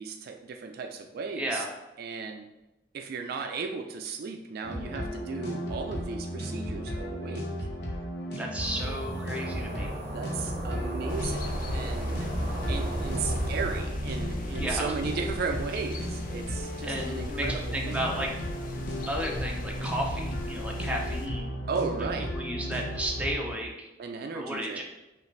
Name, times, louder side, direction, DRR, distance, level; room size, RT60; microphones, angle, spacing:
voice 1, 0.0-1.6 2.0-2.5 2.9-7.5 10.1-12.4 12.7-18.3 21.7-22.4 24.0-24.8, right 5 dB, 60° right, 4 dB, 0.3 m, -35 dB
voice 2, 1.4-1.7 8.4-9.9 14.6-14.9 16.8-18.3 19.1-21.6 22.3-23.9 24.3-24.8, right 1 dB, 10° right, -1 dB, 0.7 m, -33 dB
sound 1, 4.6-23.5, equal, 70° left, 0.9 m, -35 dB
sound 2, 8.6-13.8, right 1 dB, 40° right, 0.9 m, -35 dB
sound 3, 11.1-21.3, left 1 dB, 50° left, 0.5 m, -39 dB
5.6 x 2.5 x 3.2 m, 1.0 s
head